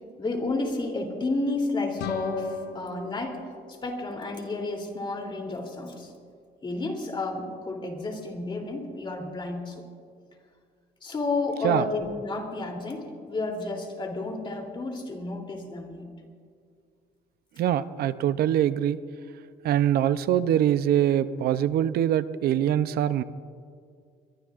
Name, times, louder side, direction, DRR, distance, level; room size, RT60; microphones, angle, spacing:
voice 1, 0.2-3.4 3.7-6.1 6.6-9.8 11.0-16.1, left 3 dB, 30° left, 2 dB, 3.2 m, -31 dB
sound 1, 2.0-4.7, left 9 dB, 80° left, 0.8 m, -41 dB
voice 2, 17.6-19.0 19.6-23.2, right 11 dB, 65° right, 13 dB, 0.6 m, -23 dB
24.0 x 22.5 x 2.5 m, 2.2 s
cardioid pair, 110°, 17 cm